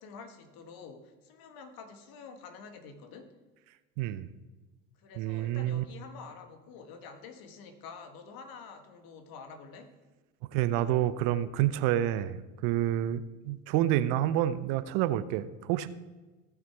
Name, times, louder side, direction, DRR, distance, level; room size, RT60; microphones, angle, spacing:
voice 1, 0.0-3.3 5.0-9.9 11.9-12.1 12.8-13.1, left 5 dB, 60° left, 7 dB, 1.6 m, -48 dB
voice 2, 4.0-4.3 5.2-5.8 10.5-15.9, right 12 dB, 65° right, 14 dB, 0.8 m, -28 dB
17.0 x 5.8 x 4.6 m, 1.2 s
hypercardioid pair, 75°, 39 cm